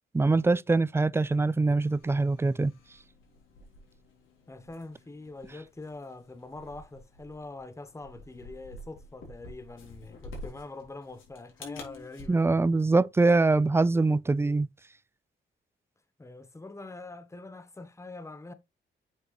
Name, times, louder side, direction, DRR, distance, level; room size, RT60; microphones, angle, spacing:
voice 1, 0.1-2.7 12.3-14.7, right 3 dB, 10° right, 0.4 m, -23 dB
sound 1, 1.8-12.3, left 2 dB, 85° left, 3.7 m, -49 dB
voice 2, 4.5-12.6 16.2-18.5, left 2 dB, 15° left, 0.9 m, -44 dB
7.4 x 6.3 x 3.2 m
cardioid pair, 80°, 20 cm